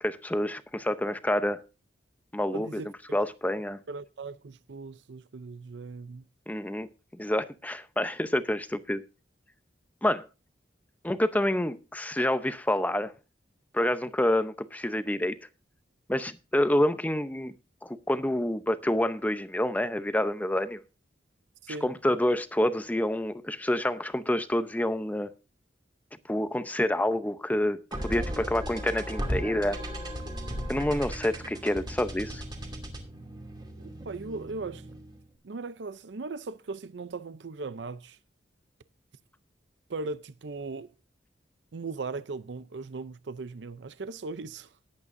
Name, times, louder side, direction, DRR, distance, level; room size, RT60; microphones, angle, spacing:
voice 1, 0.0-1.6 2.3-2.8 3.1-3.8 6.5-9.0 10.0-10.2 11.0-13.1 13.7-15.4 16.1-17.5 17.8-20.8 21.8-25.3 26.3-29.8 30.7-32.4, left 1 dB, 10° left, 0.7 m, -28 dB
voice 2, 2.5-3.2 3.9-6.3 21.6-21.8 33.8-34.9 35.4-38.2 39.9-40.9 41.7-44.7, right 3 dB, 75° right, 0.6 m, -38 dB
sound 1, 27.9-35.2, equal, 25° right, 2.6 m, -36 dB
19.0 x 8.6 x 2.6 m
head